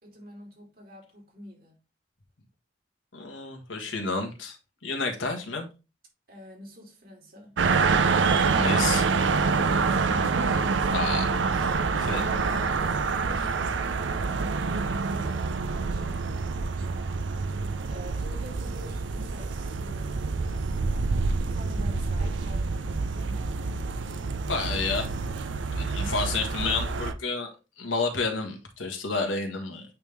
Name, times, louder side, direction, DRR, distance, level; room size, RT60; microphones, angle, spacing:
voice 1, 0.0-1.8 3.8-3.9 6.3-7.6 9.8-17.4 17.9-20.7 21.4-23.6 25.2-25.5, equal, 50° right, 2.9 m, -46 dB
voice 2, 3.1-4.6 4.8-5.7 8.5-9.1 10.9-11.3 12.0-12.2 24.5-25.1 25.7-27.5 27.8-29.9, left 4 dB, 90° left, 1.7 m, -30 dB
sound 1, 7.6-27.1, right 4 dB, 75° right, 0.5 m, -27 dB
8.8 x 3.6 x 3.4 m
head